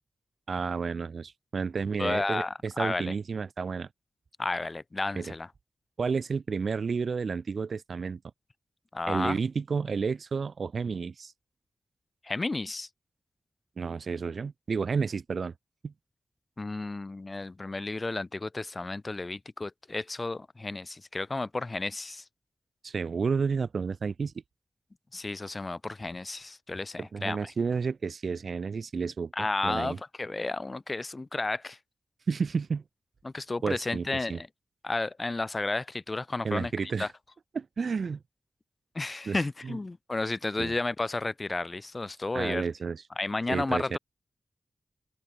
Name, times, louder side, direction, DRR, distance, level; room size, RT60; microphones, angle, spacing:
voice 1, 0.5-3.9 5.2-5.3 6.0-8.2 9.1-11.3 13.8-15.5 15.8-15.9 22.8-24.3 27.0-29.3 29.6-30.0 32.3-32.8 33.6-34.4 36.4-37.1 37.5-38.2 39.3-39.4 39.6-39.8 40.6-40.7 42.3-43.0 43.5-44.0, right 5 dB, 55° right, 0.6 m, -31 dB
voice 2, 2.0-2.5 2.8-3.1 4.4-5.5 8.9-9.4 12.2-12.9 16.6-22.2 25.1-27.5 29.3-31.8 33.2-34.5 34.8-37.1 38.9-42.7 43.2-44.0, left 2 dB, 25° left, 3.3 m, -32 dB
open air
wide cardioid pair, 160°, 0 cm